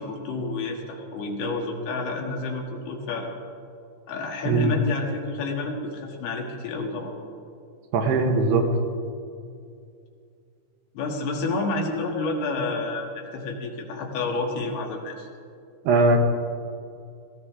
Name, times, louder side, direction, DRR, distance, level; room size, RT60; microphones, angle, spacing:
voice 1, 0.0-3.3 4.1-7.1 10.9-15.3, left 3 dB, 70° left, 1 dB, 3.4 m, -29 dB
voice 2, 4.5-4.8 7.9-8.7 15.8-16.2, right 3 dB, 80° right, 3 dB, 3.2 m, -20 dB
19.0 x 15.5 x 3.7 m, 2.4 s
omnidirectional pair, 4.7 m